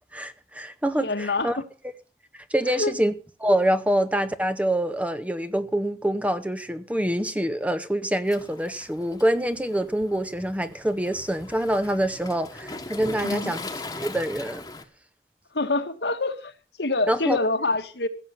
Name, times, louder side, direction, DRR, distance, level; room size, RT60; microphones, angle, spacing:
voice 1, 0.1-1.6 2.3-3.1 3.4-13.6 14.0-14.6 17.1-17.4, right 1 dB, 10° right, 0.7 m, -25 dB
voice 2, 1.0-1.6 2.6-2.9 13.1-13.5 15.5-16.5 16.8-18.1, left 3 dB, 75° left, 1.4 m, -26 dB
Waves surf, 8.3-14.8, left 2 dB, 20° left, 1.3 m, -40 dB
16.0 x 7.4 x 6.8 m
head